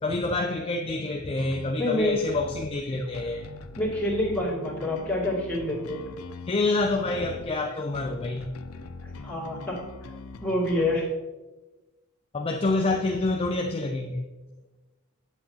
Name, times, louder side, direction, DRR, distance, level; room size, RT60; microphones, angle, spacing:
voice 1, 0.0-3.4 6.5-8.5 12.3-14.2, left 2 dB, 25° left, 3 dB, 0.4 m, -27 dB
sound 1, 1.4-11.0, left 4 dB, 85° left, 0.5 m, -42 dB
voice 2, 1.8-2.1 3.8-6.0 9.0-9.8 10.4-11.0, left 1 dB, 5° left, -8 dB, 2.5 m, -27 dB
8.6 x 8.0 x 2.8 m, 1.2 s
head